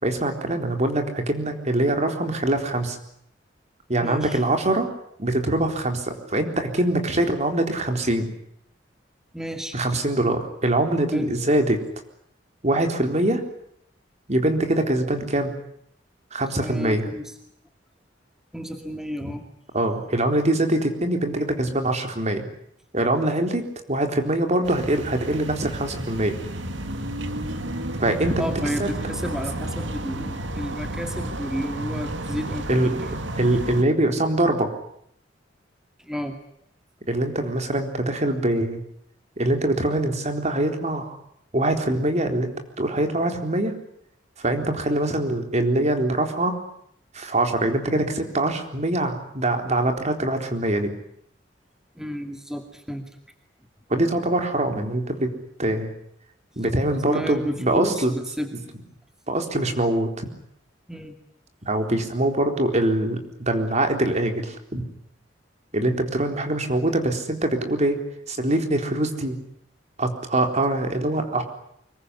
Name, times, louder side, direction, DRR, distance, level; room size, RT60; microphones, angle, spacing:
voice 1, 0.0-3.0 3.9-4.9 5.2-8.3 9.7-11.8 12.6-13.4 14.3-15.5 16.3-17.1 19.7-22.4 22.9-26.4 28.0-28.4 28.8-28.9 32.7-33.1 33.4-34.7 37.1-38.8 39.4-41.2 41.5-42.5 42.8-43.7 44.4-46.6 47.1-50.9 53.9-55.3 55.6-55.9 56.6-58.1 59.3-60.3 61.7-64.9 65.7-68.0 68.3-69.4 70.0-71.4, right 1 dB, 40° right, 5 dB, 4.0 m, -23 dB
voice 2, 4.0-4.4 9.3-9.8 11.1-11.3 16.6-17.3 18.5-19.4 28.4-33.1 36.0-36.4 52.0-53.0 56.9-58.5 60.9-61.2, equal, 5° right, 5 dB, 2.3 m, -32 dB
sound 1, 24.6-33.8, right 1 dB, 80° right, 2.1 m, -31 dB
25.0 x 22.5 x 9.9 m, 0.72 s
head